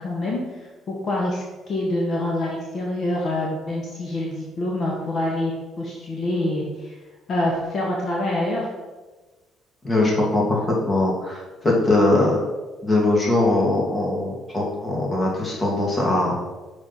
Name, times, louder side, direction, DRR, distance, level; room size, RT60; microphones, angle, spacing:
voice 1, 0.0-7.0 7.3-8.7, left 1 dB, 50° left, -2 dB, 1.2 m, -26 dB
voice 2, 9.8-12.4 12.8-16.4, left 2 dB, 25° left, -3 dB, 1.9 m, -21 dB
6.1 x 5.2 x 4.1 m, 1.2 s
cardioid pair, 110°, 0 cm